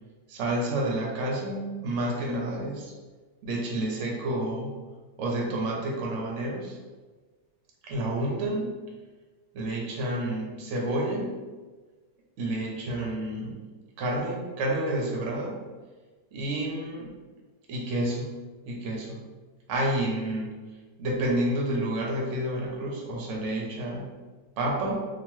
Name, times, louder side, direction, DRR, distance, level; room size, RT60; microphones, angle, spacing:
voice 1, 0.3-2.9 3.4-4.7 5.2-6.8 7.8-8.8 9.5-11.4 12.4-13.6 14.0-15.6 16.3-17.1 17.7-18.3 18.6-19.2 19.7-20.5 21.0-24.0 24.6-25.0, right 1 dB, 60° right, -2 dB, 0.8 m, -29 dB
2.9 x 2.3 x 3.0 m, 1.4 s
omnidirectional pair, 1.7 m